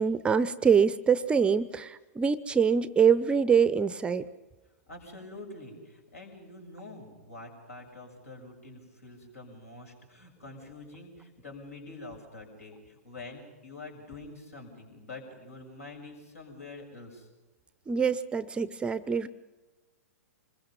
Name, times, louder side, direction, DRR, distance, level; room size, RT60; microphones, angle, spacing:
voice 1, 0.0-4.2 17.9-19.3, right 6 dB, 15° right, 16 dB, 0.7 m, -24 dB
voice 2, 4.9-17.3, left 2 dB, 75° left, 2 dB, 7.1 m, -46 dB
26.0 x 21.5 x 5.6 m, 1.2 s
figure-of-eight pair, 110°, 8 cm